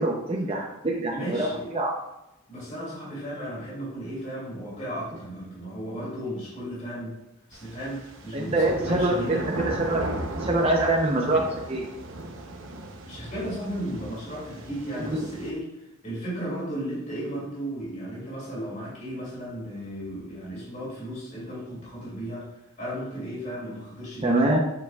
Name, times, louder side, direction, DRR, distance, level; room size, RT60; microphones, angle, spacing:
voice 1, 0.0-1.5 1.7-1.9 8.3-9.4 9.6-10.1 10.4-11.4 11.7-11.9 24.2-24.6, right 2 dB, 25° right, -2 dB, 0.7 m, -24 dB
voice 2, 1.1-1.7 2.5-7.1 7.5-9.4 13.0-15.7 16.0-22.5 22.8-24.5, equal, 35° left, -6 dB, 2.5 m, -35 dB
sound 1, 7.5-15.5, right 1 dB, 60° right, 0.8 m, -36 dB
6.9 x 6.9 x 2.3 m, 0.90 s
head